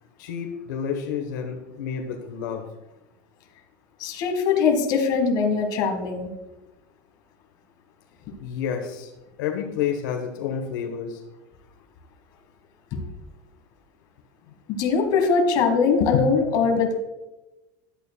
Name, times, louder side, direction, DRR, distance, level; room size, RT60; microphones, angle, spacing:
voice 1, 0.2-2.6 8.4-9.1 9.4-11.2 16.0-16.1, left 7 dB, 75° left, 4 dB, 1.1 m, -29 dB
voice 2, 4.0-6.3 12.9-13.0 14.7-17.0, left 5 dB, 45° left, 4 dB, 1.5 m, -22 dB
11.5 x 8.4 x 2.3 m, 1.0 s
supercardioid pair, 145°, 10 cm